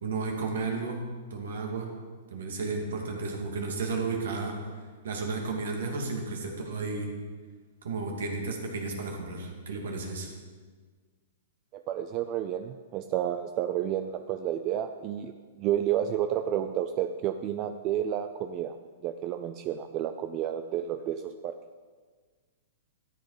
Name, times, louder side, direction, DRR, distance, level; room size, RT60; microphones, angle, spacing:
voice 1, 0.0-1.9 2.3-4.6 5.0-7.1 7.8-10.3, right 3 dB, 80° right, 1 dB, 2.4 m, -33 dB
voice 2, 11.7-15.3 15.6-18.8 19.0-21.6, right 10 dB, 35° right, 8 dB, 0.5 m, -30 dB
13.0 x 8.2 x 5.0 m, 1.5 s
hypercardioid pair, 135°, 0 cm